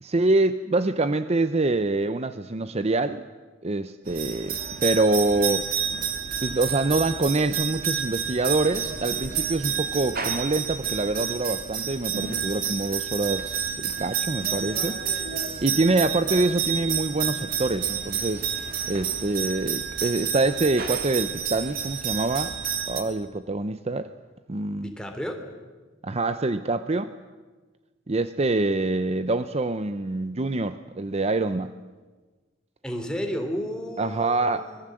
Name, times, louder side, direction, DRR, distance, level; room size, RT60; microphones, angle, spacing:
voice 1, 0.0-3.2 3.6-5.7 6.4-15.0 15.6-18.4 18.9-22.6 22.9-24.1 24.5-24.9 26.0-27.1 28.1-31.7 34.0-34.7, right 2 dB, 35° right, 11 dB, 0.7 m, -25 dB
sound 1, 4.1-23.0, right 7 dB, 50° right, 2.7 m, -29 dB
voice 2, 24.8-25.4 32.8-34.9, equal, 5° left, 4 dB, 3.2 m, -32 dB
25.5 x 21.5 x 7.8 m, 1.3 s
head